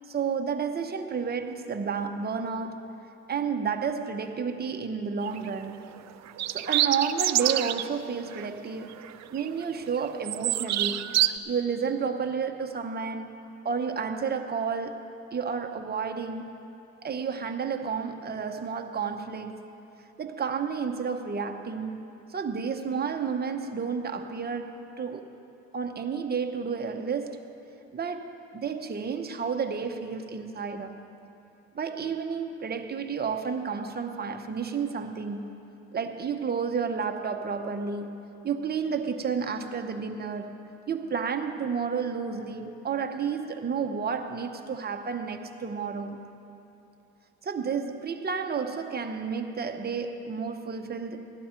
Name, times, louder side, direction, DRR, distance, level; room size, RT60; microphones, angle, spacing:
voice 1, 0.1-2.9 3.3-5.8 6.5-9.0 9.3-11.2 11.4-13.4 13.6-16.5 17.0-19.6 20.2-22.0 22.3-25.3 25.7-27.4 27.9-31.0 31.7-35.6 35.9-46.2 47.4-51.3, right 6 dB, 30° right, 0.9 m, -31 dB
sound 1, 5.2-5.5 6.3-7.9 8.3-8.5 8.9-9.6 9.9-11.3, right 13 dB, 65° right, 0.5 m, -26 dB
16.0 x 12.0 x 4.4 m
cardioid pair, 90°, 30 cm